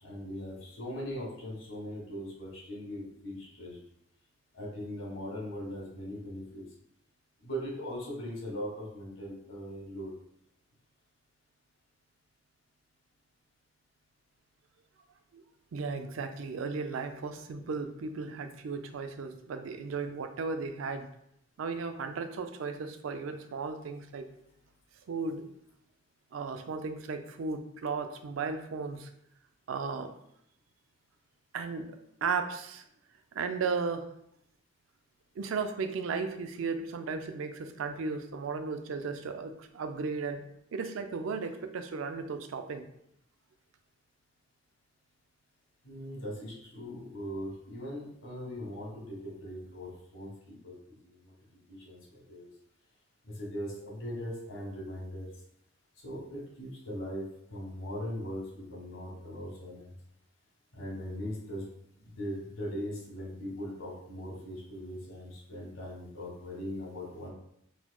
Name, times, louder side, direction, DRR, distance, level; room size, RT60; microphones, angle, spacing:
voice 1, 0.0-3.8 4.5-6.6 7.4-10.1 45.8-50.7 51.0-51.1 51.7-52.5 53.4-55.3 56.0-57.2 57.5-59.9 60.7-61.6 62.0-67.3, equal, 80° left, -3 dB, 1.4 m, -40 dB
voice 2, 15.7-21.1 21.6-24.3 25.1-25.4 26.3-29.1 29.7-30.1 31.5-32.8 33.3-34.1 35.4-40.4 40.7-42.9, right 4 dB, 85° right, 8 dB, 0.4 m, -35 dB
4.0 x 3.0 x 2.2 m, 0.72 s
head